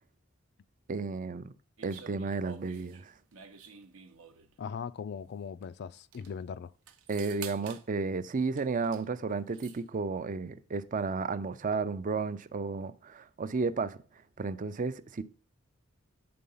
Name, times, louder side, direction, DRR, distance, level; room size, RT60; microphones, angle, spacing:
voice 1, 0.9-1.5 1.8-3.1 7.1-14.0 14.4-15.2, right 4 dB, 35° right, 0.5 m, -33 dB
sound 1, 1.8-4.6 5.6-5.7 6.0-6.3 6.9-7.9 8.6-9.1 9.3-9.8, right 7 dB, 75° right, 0.8 m, -49 dB
voice 2, 4.6-6.7, left 6 dB, 50° left, 0.3 m, -39 dB
8.7 x 3.8 x 5.5 m
head